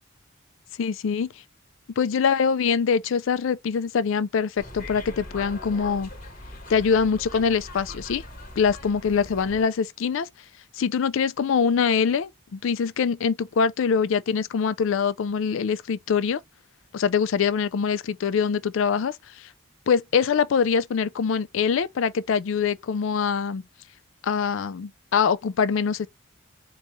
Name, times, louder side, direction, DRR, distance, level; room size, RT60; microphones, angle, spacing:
voice 1, 0.8-1.3 2.0-6.1 6.7-8.2 8.6-10.3 10.8-16.4 16.9-19.5 19.9-23.6 24.2-26.1, left 6 dB, 70° left, 0.4 m, -24 dB
sound 1, 4.6-9.6, left 1 dB, 40° left, 1.1 m, -41 dB
4.1 x 2.3 x 3.1 m
head